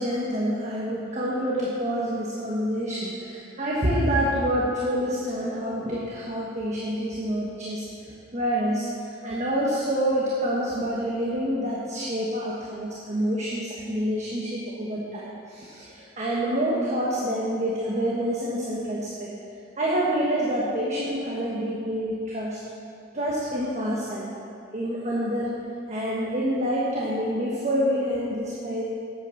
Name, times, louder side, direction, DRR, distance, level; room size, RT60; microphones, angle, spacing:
voice 1, 0.0-7.9 8.3-8.9 9.2-19.3 19.8-22.6 23.1-24.3 24.7-25.5 25.9-28.8, equal, 40° right, -6 dB, 1.4 m, -27 dB
9.1 x 8.6 x 6.4 m, 2.5 s
head